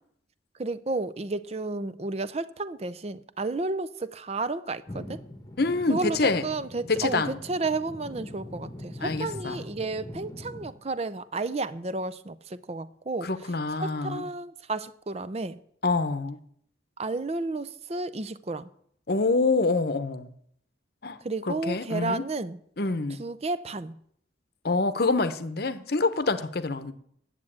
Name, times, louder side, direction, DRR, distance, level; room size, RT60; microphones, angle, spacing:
voice 1, 0.6-5.2 5.9-13.3 13.8-15.6 17.0-18.7 21.2-22.6 23.2-24.0, right 3 dB, 35° right, 0.5 m, -32 dB
sound 1, 4.9-10.8, left 1 dB, 20° left, 1.2 m, -42 dB
voice 2, 5.6-6.5 6.9-7.4 9.0-9.6 13.2-14.3 15.8-16.4 19.1-20.3 21.0-22.2 22.8-23.2 24.6-26.9, left 3 dB, 55° left, 0.8 m, -26 dB
10.0 x 7.5 x 8.6 m
head